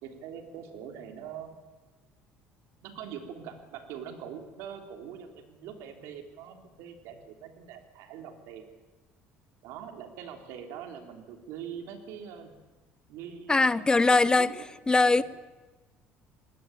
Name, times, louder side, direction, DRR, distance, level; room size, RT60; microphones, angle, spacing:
voice 1, 0.0-1.6 2.8-8.7 9.6-12.5 13.1-14.5 15.0-15.2, right 8 dB, 75° right, 5 dB, 3.5 m, -43 dB
voice 2, 13.5-14.5 14.9-15.2, left 3 dB, 15° left, 17 dB, 0.7 m, -21 dB
20.5 x 19.0 x 9.1 m, 1.2 s
supercardioid pair, 95°, 5 cm